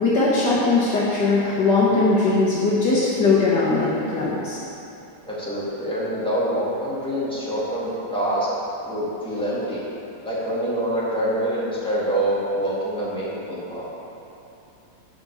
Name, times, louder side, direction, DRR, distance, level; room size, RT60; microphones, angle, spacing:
voice 1, 0.0-4.6, left 3 dB, 75° left, -7 dB, 0.9 m, -20 dB
voice 2, 5.2-8.5 8.8-9.8 10.2-13.9, right 1 dB, 5° left, -9 dB, 0.9 m, -25 dB
7.7 x 5.2 x 7.0 m, 2.9 s
omnidirectional pair, 3.6 m